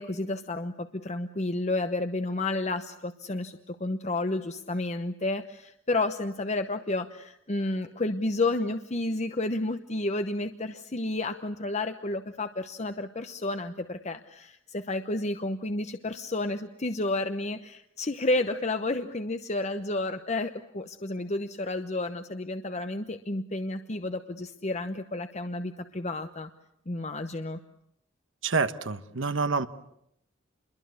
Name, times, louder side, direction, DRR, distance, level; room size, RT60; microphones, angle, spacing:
voice 1, 0.0-26.5 26.9-27.6, left 2 dB, 35° left, 8 dB, 1.0 m, -31 dB
voice 2, 28.4-29.7, right 4 dB, 80° right, 10 dB, 1.3 m, -27 dB
28.0 x 22.5 x 8.3 m, 0.74 s
head